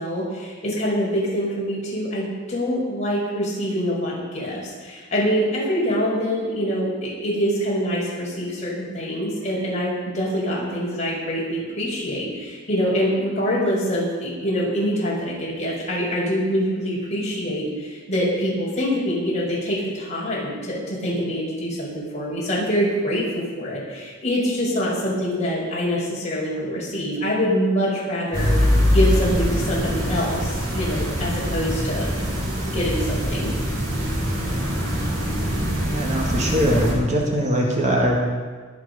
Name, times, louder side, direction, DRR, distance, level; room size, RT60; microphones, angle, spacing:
voice 1, 0.0-32.1 32.7-33.5, equal, 35° left, -6 dB, 5.5 m, -25 dB
sound 1, 28.3-36.9, equal, 65° right, 5.4 m, -23 dB
voice 2, 35.9-38.2, equal, 35° right, -1 dB, 2.0 m, -21 dB
21.0 x 8.1 x 5.3 m, 1.5 s
head